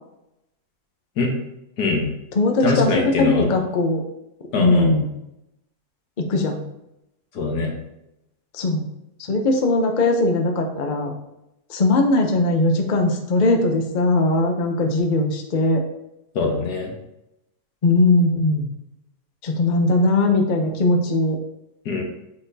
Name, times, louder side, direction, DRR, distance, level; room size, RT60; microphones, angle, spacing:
voice 1, 1.8-2.1 2.6-3.5 4.5-4.9 7.3-7.7 16.3-16.9 21.9-22.0, left 3 dB, 80° left, 1 dB, 1.8 m, -22 dB
voice 2, 2.3-4.0 4.5-5.1 6.2-6.6 8.5-8.9 9.2-11.1 11.7-15.8 17.8-18.7 19.4-21.4, left 2 dB, 40° left, 3 dB, 0.7 m, -19 dB
8.5 x 4.1 x 2.8 m, 0.86 s
omnidirectional pair, 1.7 m